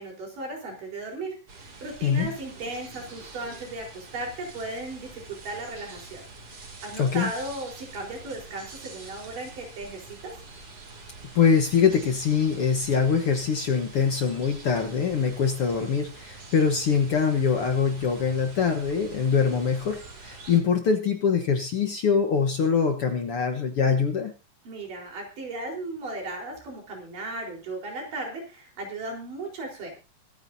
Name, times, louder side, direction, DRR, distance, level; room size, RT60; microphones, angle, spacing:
voice 1, 0.0-6.2 6.5-10.3 24.6-29.9, right 2 dB, 80° right, 0 dB, 5.9 m, -36 dB
sound 1, 1.5-20.6, right 3 dB, 45° right, 3.6 m, -45 dB
voice 2, 7.0-7.3 11.3-24.3, left 6 dB, 55° left, 5 dB, 1.7 m, -23 dB
24.0 x 9.7 x 2.7 m, 0.32 s
omnidirectional pair, 3.8 m